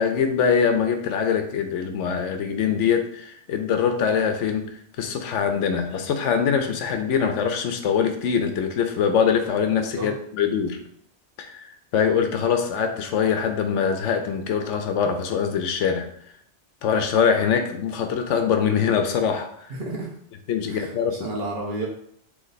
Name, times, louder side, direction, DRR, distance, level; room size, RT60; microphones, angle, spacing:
voice 1, 0.0-10.8 11.4-16.1 16.8-19.7 20.5-21.3, left 7 dB, 85° left, 6 dB, 0.9 m, -23 dB
voice 2, 19.7-20.1 20.7-21.9, right 2 dB, 55° right, -2 dB, 1.1 m, -31 dB
3.2 x 3.1 x 4.0 m, 0.66 s
omnidirectional pair, 1.2 m